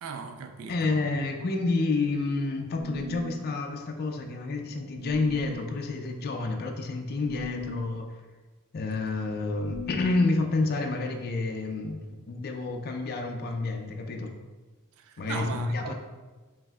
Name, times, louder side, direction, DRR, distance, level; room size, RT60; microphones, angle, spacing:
voice 1, 0.0-1.0 15.0-15.9, right 5 dB, 65° right, 0.3 m, -38 dB
voice 2, 0.7-8.1 8.7-12.0 12.3-14.3 15.2-15.9, left 3 dB, 45° left, 0.4 m, -29 dB
sound 1, 2.7-3.4 4.9-5.6 7.2-7.8 9.6-10.3, left 3 dB, 15° right, 0.9 m, -39 dB
5.2 x 2.6 x 2.3 m
head